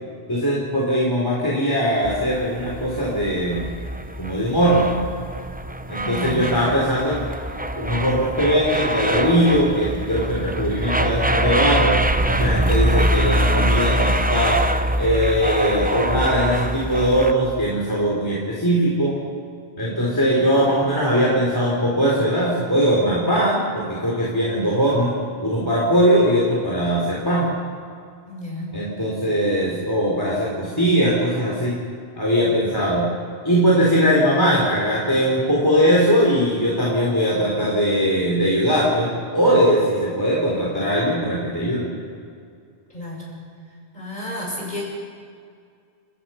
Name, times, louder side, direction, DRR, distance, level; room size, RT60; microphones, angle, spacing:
voice 1, 0.3-3.7 4.2-5.0 5.9-7.2 7.7-12.0 12.3-14.6 15.0-19.2 19.8-25.1 25.4-27.5 28.7-31.7 32.2-33.1 33.4-41.9, equal, 20° left, -5 dB, 3.9 m, -20 dB
sound 1, 2.0-17.3, right 1 dB, 10° right, 0.5 m, -23 dB
voice 2, 6.0-6.5 28.3-28.8 42.9-43.3 43.9-44.8, left 1 dB, 40° left, -3 dB, 7.2 m, -31 dB
29.5 x 18.0 x 5.8 m, 2.2 s
omnidirectional pair, 1.2 m